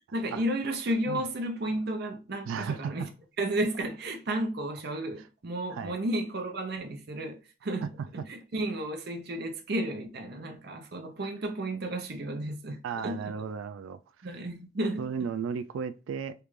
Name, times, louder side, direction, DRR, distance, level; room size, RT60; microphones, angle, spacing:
voice 1, 0.1-3.1 3.4-7.9 8.3-13.2 14.2-15.0, right 1 dB, 55° right, 0.6 m, -32 dB
voice 2, 2.5-3.1 5.7-5.9 11.2-11.3 12.8-14.0 15.0-16.3, right 6 dB, 80° right, 0.3 m, -34 dB
3.3 x 2.5 x 3.1 m
head